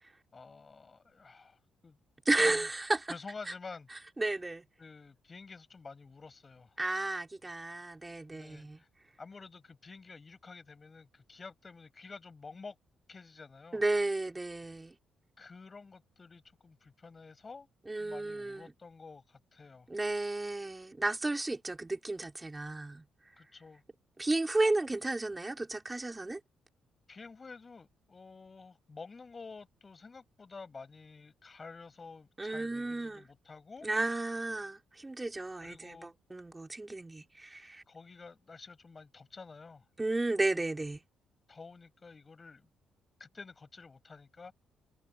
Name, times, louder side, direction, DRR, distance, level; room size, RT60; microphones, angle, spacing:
voice 1, 0.3-2.0 2.4-2.7 3.1-3.9 4.8-6.8 8.3-8.9 9.2-12.8 13.1-13.8 15.4-17.7 18.0-19.9 23.4-23.8 27.1-33.9 35.6-36.1 37.9-39.8 41.5-42.7 43.2-44.5, left 4 dB, 30° left, 6.2 m, -50 dB
voice 2, 2.3-3.1 4.2-4.7 6.8-8.8 13.7-15.0 17.9-18.7 19.9-23.0 24.2-26.4 32.4-33.3 33.8-37.8 40.0-41.0, right 2 dB, 15° right, 3.5 m, -33 dB
cardioid pair, 90°, 0 cm